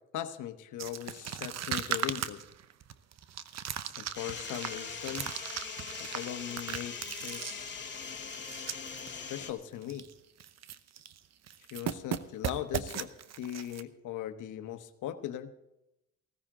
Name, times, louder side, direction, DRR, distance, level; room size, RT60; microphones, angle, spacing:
voice 1, 0.1-2.4 3.9-5.3 6.0-7.0 7.2-7.8 8.6-8.7 9.1-10.1 11.7-13.1 13.4-15.5, left 11 dB, 80° left, 9 dB, 1.2 m, -39 dB
sound 1, 0.8-9.1 9.4-9.5 9.8-10.1 10.4-11.2 11.5-13.8, right 9 dB, 60° right, 0.9 m, -38 dB
sound 2, 4.1-9.5, left 6 dB, 35° left, 2.2 m, -41 dB
16.0 x 14.5 x 3.8 m, 0.88 s
cardioid pair, 90°, 30 cm